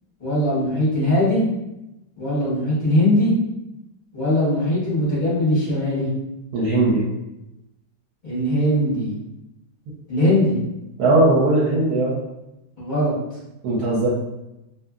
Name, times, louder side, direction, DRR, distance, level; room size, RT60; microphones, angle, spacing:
voice 1, 0.2-1.4 2.2-3.3 4.1-6.1 8.2-9.1 10.1-10.6 12.8-13.1, left 1 dB, 35° left, -10 dB, 0.8 m, -20 dB
voice 2, 6.5-7.0 11.0-12.2 13.6-14.1, right 2 dB, 70° right, -6 dB, 1.0 m, -18 dB
2.8 x 2.5 x 2.3 m, 0.93 s
omnidirectional pair, 1.9 m